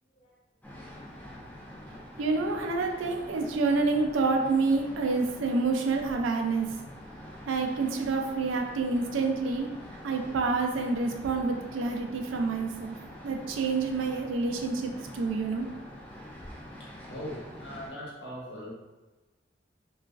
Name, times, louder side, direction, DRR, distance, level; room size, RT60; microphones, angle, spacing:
sound 1, 0.6-17.9, equal, 10° left, 0.3 m, -45 dB
voice 1, 2.2-6.7 7.5-9.7 10.0-13.0 13.2-15.7, right 3 dB, 90° right, 3 dB, 0.4 m, -28 dB
voice 2, 16.8-18.7, equal, 65° left, -5 dB, 0.9 m, -41 dB
3.0 x 2.3 x 2.4 m, 1.2 s
head